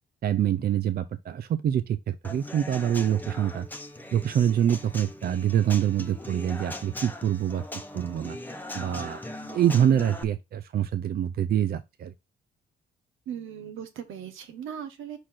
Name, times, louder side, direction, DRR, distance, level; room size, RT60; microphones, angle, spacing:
voice 1, 0.2-3.7 4.1-7.6 7.9-8.4 8.7-12.1, right 10 dB, 50° right, 0.5 m, -25 dB
Human voice / Acoustic guitar / Drum, 2.2-10.2, left 1 dB, 10° left, 0.9 m, -40 dB
voice 2, 13.3-15.2, right 9 dB, 85° right, 1.3 m, -38 dB
4.9 x 4.2 x 5.6 m
cardioid pair, 90°, 20 cm